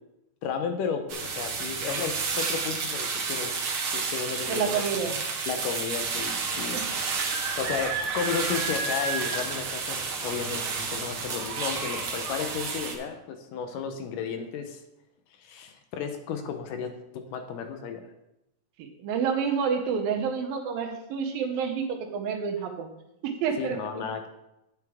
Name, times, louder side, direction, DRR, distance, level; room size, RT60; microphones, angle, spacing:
voice 1, 0.4-3.5 3.9-5.1 5.5-6.8 7.6-14.8 15.4-18.1 23.6-24.3, left 6 dB, 75° left, 6 dB, 2.2 m, -33 dB
sound 1, 1.1-13.0, right 4 dB, 70° right, 1.3 m, -31 dB
voice 2, 4.5-5.2 6.7-6.9 18.8-22.9 23.2-23.8, right 6 dB, 85° right, 4 dB, 2.8 m, -29 dB
9.5 x 8.3 x 3.5 m, 0.87 s
omnidirectional pair, 4.1 m